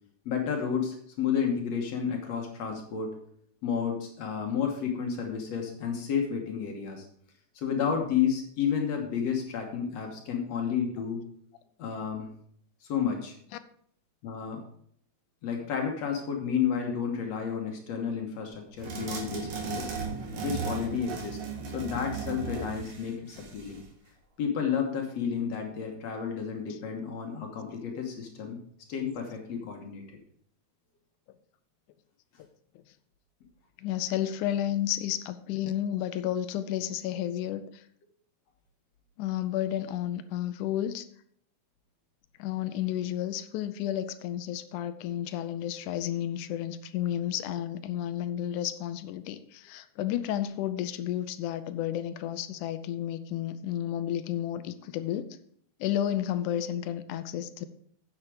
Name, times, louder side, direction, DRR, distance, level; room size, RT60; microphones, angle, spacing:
voice 1, 0.3-3.2 3.6-7.0 7.6-11.2 11.8-12.3 12.8-13.4 14.2-14.6 15.4-19.9 20.4-21.4 21.7-23.8 24.4-28.6 28.9-30.2, left 7 dB, 60° left, 2 dB, 2.3 m, -31 dB
sound 1, 18.8-23.8, right 4 dB, 70° right, 3.2 m, -36 dB
voice 2, 33.8-37.8 39.2-41.1 42.4-55.4 55.8-57.7, left 11 dB, 85° left, 12 dB, 2.1 m, -32 dB
9.6 x 7.4 x 4.9 m, 0.64 s
omnidirectional pair, 3.6 m